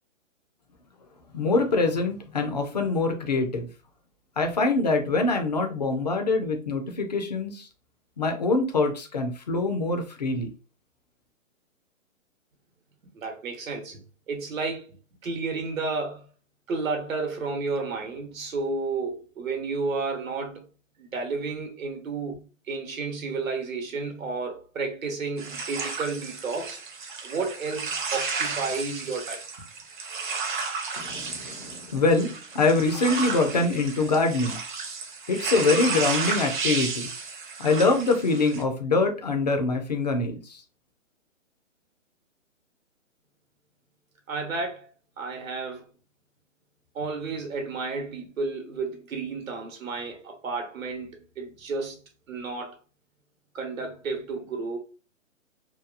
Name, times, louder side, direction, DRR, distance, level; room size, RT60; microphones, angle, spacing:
voice 1, 1.3-3.7 4.4-7.7 8.2-10.5 31.0-34.6 35.3-37.1 37.6-40.6, left 3 dB, 35° left, 0.4 m, -24 dB
voice 2, 13.1-14.0 14.3-15.0 15.2-16.3 16.7-20.7 21.0-22.3 22.7-26.8 27.2-29.4 44.3-44.9 45.2-45.9 46.9-52.0 52.3-52.8 53.5-54.8, right 4 dB, 85° right, 0.9 m, -32 dB
sound 1, 25.4-38.6, right 4 dB, 40° right, 0.6 m, -33 dB
2.8 x 2.2 x 2.4 m
hypercardioid pair, 155°, 39 cm